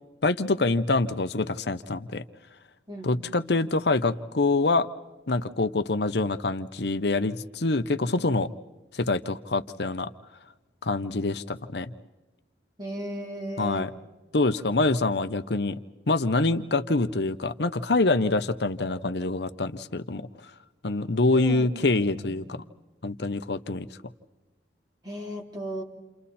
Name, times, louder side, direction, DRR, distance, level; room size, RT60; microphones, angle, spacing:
voice 1, 0.2-2.2 3.0-4.9 5.3-8.5 8.9-10.1 10.8-11.9 13.6-13.9 14.3-15.8 16.1-20.3 20.8-22.6 23.0-23.9, left 2 dB, 70° left, 10 dB, 0.9 m, -25 dB
voice 2, 2.9-3.5 12.8-13.9 21.3-21.7 22.0-22.3 25.0-25.8, equal, 25° right, 0 dB, 3.7 m, -35 dB
29.0 x 29.0 x 4.3 m, 1.1 s
head